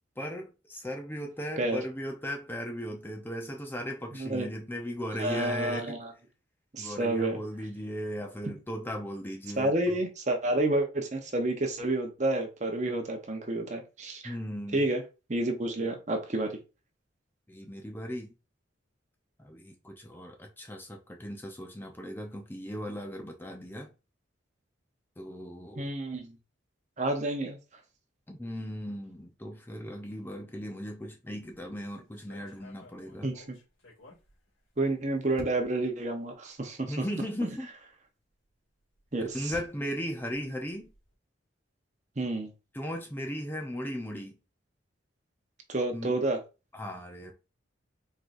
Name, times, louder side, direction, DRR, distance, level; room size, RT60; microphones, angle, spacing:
voice 1, 0.2-6.0 6.8-10.0 14.2-14.8 17.5-18.3 19.4-23.9 25.2-25.9 28.3-33.3 36.9-37.7 39.2-40.9 42.7-44.4 45.9-46.1 46.7-47.3, equal, 10° left, 0.7 m, -37 dB
voice 2, 5.2-6.1 6.7-7.4 9.6-14.3 14.7-15.0 15.3-16.6 25.8-26.3 27.0-27.6 33.2-33.4 34.8-37.0 37.4-37.5 39.1-39.5 42.2-42.5 45.7-46.4, right 2 dB, 35° right, 0.9 m, -29 dB
sound 1, 31.3-31.6 32.1-34.9 35.4-35.9 36.6-36.7 37.1-37.2 38.8-41.1, left 1 dB, 85° left, 2.3 m, -52 dB
4.5 x 3.9 x 2.6 m
head